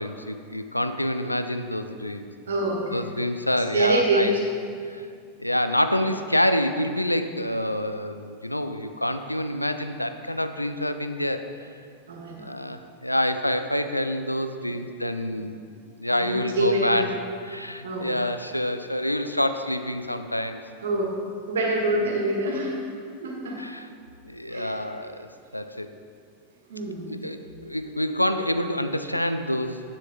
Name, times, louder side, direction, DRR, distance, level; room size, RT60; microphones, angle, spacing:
voice 1, 0.0-2.3 2.9-4.3 4.9-5.1 5.4-11.4 12.4-15.6 16.0-17.0 17.4-20.6 23.6-23.9 24.2-25.9 27.1-29.8, left 1 dB, 85° left, 8 dB, 0.4 m, -27 dB
voice 2, 2.5-3.0 3.7-4.4 12.1-12.5 16.2-17.1 17.8-18.1 20.8-21.1 21.5-22.8 23.2-23.6 24.5-24.8 26.7-27.2, right 1 dB, 65° right, 0 dB, 1.6 m, -25 dB
10.0 x 7.6 x 3.7 m, 2.2 s
figure-of-eight pair, 90°, 0 cm